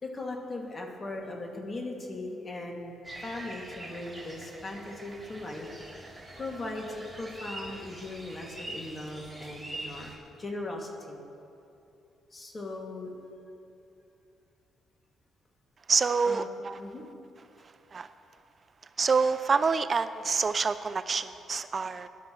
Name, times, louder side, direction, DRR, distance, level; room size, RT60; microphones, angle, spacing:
voice 1, 0.0-2.9 3.2-5.7 6.4-11.2 12.3-13.1 16.2-16.5 16.8-17.1, left 2 dB, 30° left, 0 dB, 2.3 m, -38 dB
sound 1, 3.0-10.2, right 1 dB, 10° right, 3.3 m, -44 dB
voice 2, 15.9-16.8 17.9-18.1 19.0-22.1, right 5 dB, 40° right, 12 dB, 0.3 m, -27 dB
21.0 x 12.0 x 3.2 m, 2.7 s
cardioid pair, 90°, 0 cm